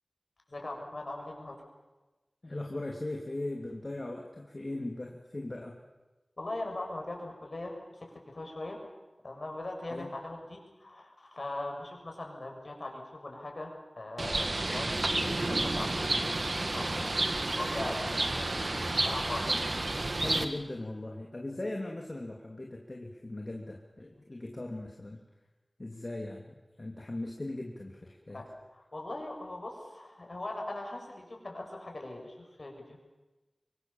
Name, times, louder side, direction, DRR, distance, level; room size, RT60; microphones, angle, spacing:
voice 1, 0.5-1.6 6.4-8.8 9.2-17.1 17.6-19.5 24.1-24.2 28.3-33.0, left 2 dB, 60° left, 1 dB, 6.7 m, -40 dB
voice 2, 2.4-5.8 9.9-10.1 19.5-19.6 20.2-25.2 25.8-28.4, left 2 dB, 45° left, 1 dB, 2.8 m, -39 dB
Bird, 14.2-20.4, right 2 dB, 60° right, 2.0 m, -30 dB
24.5 x 24.0 x 7.2 m, 1.1 s
wide cardioid pair, 55°, 0 cm